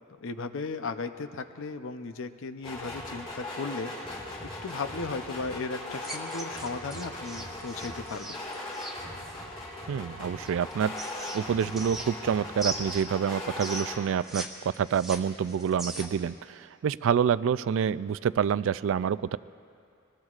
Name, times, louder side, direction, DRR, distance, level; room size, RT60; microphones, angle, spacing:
voice 1, 0.2-8.4, left 4 dB, 65° left, 9 dB, 0.6 m, -36 dB
sound 1, 2.6-14.0, left 1 dB, 30° left, 4.4 m, -39 dB
sound 2, 6.0-9.0 10.4-12.3 12.6-14.5 14.7-16.3, right 2 dB, ahead, 1.5 m, -38 dB
voice 2, 9.9-14.5 14.8-19.4, right 7 dB, 65° right, 17 dB, 0.3 m, -27 dB
24.0 x 20.0 x 2.4 m, 2.4 s
head